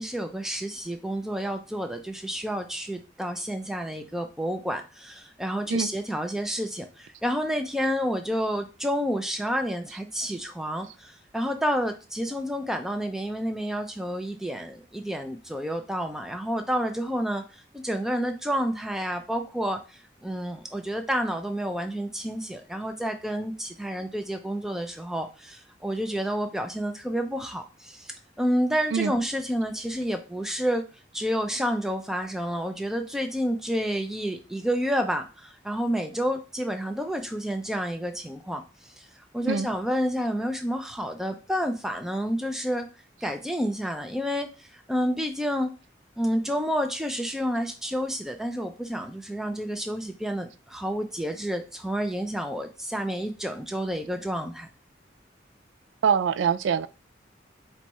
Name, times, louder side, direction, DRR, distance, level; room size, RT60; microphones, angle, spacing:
voice 1, 0.0-30.8 31.1-42.9 43.2-45.7 46.2-54.7, equal, ahead, 0.4 m, -29 dB
voice 2, 56.0-56.9, right 7 dB, 85° right, 0.3 m, -24 dB
4.5 x 2.3 x 4.1 m
head